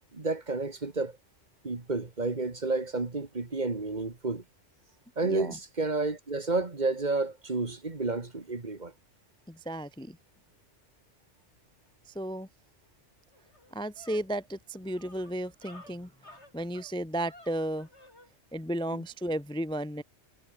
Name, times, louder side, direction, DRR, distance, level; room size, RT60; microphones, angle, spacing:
voice 1, 0.1-1.2 1.6-4.4 5.2-8.9, right 3 dB, 40° right, 2.1 m, -31 dB
voice 2, 5.2-5.5 9.5-10.2 12.1-12.5 13.7-16.1 16.5-17.9 18.5-20.0, right 1 dB, 5° left, 0.4 m, -34 dB
sound 1, 12.8-12.9 13.3-18.3, left 1 dB, 70° left, 7.1 m, -54 dB
omnidirectional pair, 1.2 m